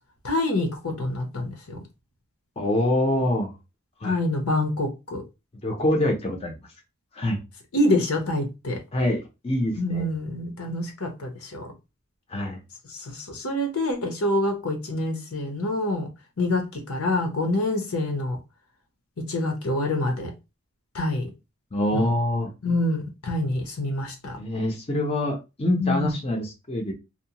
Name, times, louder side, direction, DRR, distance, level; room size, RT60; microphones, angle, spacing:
voice 1, 0.2-1.8 4.0-5.2 7.7-8.8 9.8-11.7 12.9-16.1 16.4-18.4 19.3-20.3 20.9-21.3 21.9-22.1 22.6-24.4 25.8-26.1, left 1 dB, 80° left, 0.8 m, -26 dB
voice 2, 2.6-3.5 4.0-4.2 5.6-6.5 7.2-7.4 8.9-10.1 12.3-12.6 21.7-22.5 24.4-26.9, left 1 dB, 25° left, 0.5 m, -25 dB
2.7 x 2.1 x 2.8 m
head